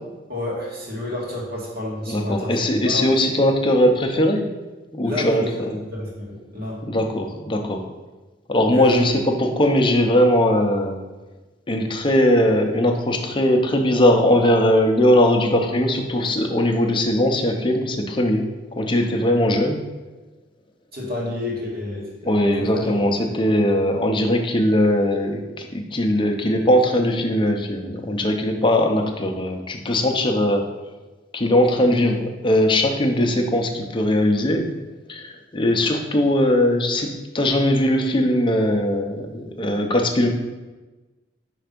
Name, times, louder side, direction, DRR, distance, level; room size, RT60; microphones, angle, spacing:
voice 1, 0.3-3.1 5.0-6.8 8.7-9.1 20.9-22.9, left 1 dB, 55° right, -4 dB, 1.7 m, -30 dB
voice 2, 2.0-4.5 4.9-5.8 6.8-7.8 8.5-11.0 11.7-18.5 18.8-19.8 22.3-30.6 31.3-34.7 35.1-40.3, left 1 dB, 25° left, 3 dB, 0.6 m, -20 dB
5.5 x 3.4 x 5.1 m, 1.2 s
head